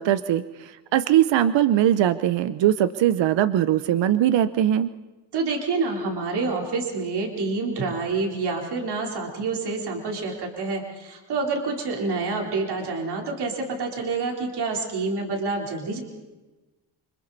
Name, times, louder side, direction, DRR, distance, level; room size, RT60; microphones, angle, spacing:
voice 1, 0.0-4.9, right 11 dB, 80° right, 12 dB, 0.9 m, -21 dB
voice 2, 5.3-16.0, right 3 dB, 60° right, 1 dB, 4.0 m, -27 dB
29.0 x 26.0 x 4.2 m, 1.2 s
wide cardioid pair, 175°, 44 cm